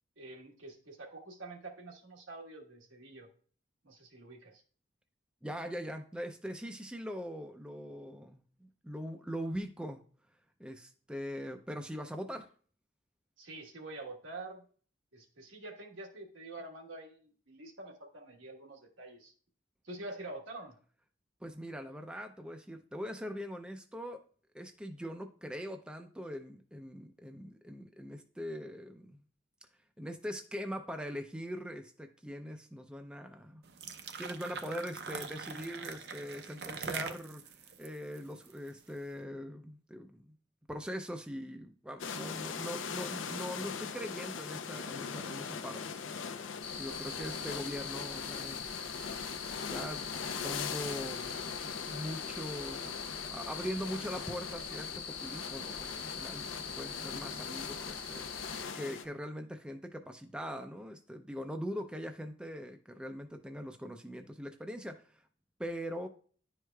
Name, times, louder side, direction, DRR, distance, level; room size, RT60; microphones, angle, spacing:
voice 1, 0.2-3.3 3.8-4.6 13.4-14.6 15.1-19.3 19.8-20.7 46.9-47.3, right 2 dB, 85° right, 1 dB, 1.4 m, -47 dB
voice 2, 5.4-10.0 10.6-12.5 21.4-24.2 24.5-29.2 30.0-33.6 34.2-40.3 40.7-46.0 46.8-48.8 49.5-51.4 51.9-65.2 65.6-66.1, equal, 5° right, 5 dB, 0.4 m, -42 dB
sound 1, 33.6-38.9, right 5 dB, 55° right, 0.6 m, -43 dB
sound 2, 42.0-59.0, left 6 dB, 85° left, 0.6 m, -41 dB
sound 3, 46.6-58.6, left 6 dB, 50° left, 0.9 m, -43 dB
10.5 x 4.7 x 2.2 m, 0.44 s
head